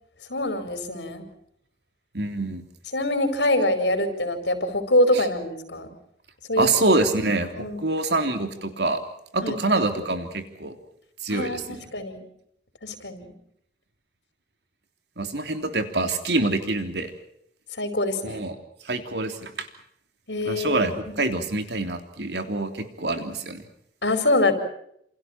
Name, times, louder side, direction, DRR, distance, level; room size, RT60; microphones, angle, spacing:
voice 1, 0.3-1.2 2.9-5.9 6.5-6.7 7.6-7.8 9.4-9.6 11.3-12.2 12.8-13.3 17.8-18.4 20.3-21.1 24.0-24.5, left 1 dB, 85° left, 7 dB, 4.8 m, -24 dB
voice 2, 2.1-2.6 5.1-5.2 6.6-7.5 7.8-9.0 9.3-10.7 11.2-11.8 15.2-17.1 18.2-18.5 18.8-19.7 20.4-23.6, right 2 dB, 70° right, 7 dB, 3.2 m, -25 dB
28.5 x 28.5 x 4.5 m, 0.70 s
head